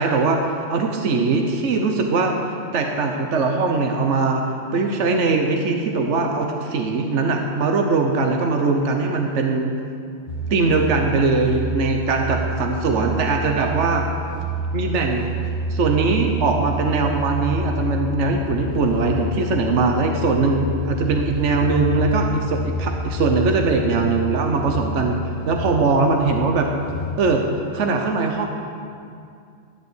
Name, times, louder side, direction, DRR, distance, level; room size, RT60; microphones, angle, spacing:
voice 1, 0.0-2.3 2.7-4.4 4.7-9.7 10.5-14.1 14.7-15.3 15.7-25.2 25.4-26.7 27.2-27.4 27.7-28.5, right 4 dB, 70° right, 3 dB, 1.3 m, -21 dB
sound 1, 10.3-27.2, equal, 75° left, 1.6 m, -28 dB
13.5 x 7.4 x 8.2 m, 2.4 s
omnidirectional pair, 1.3 m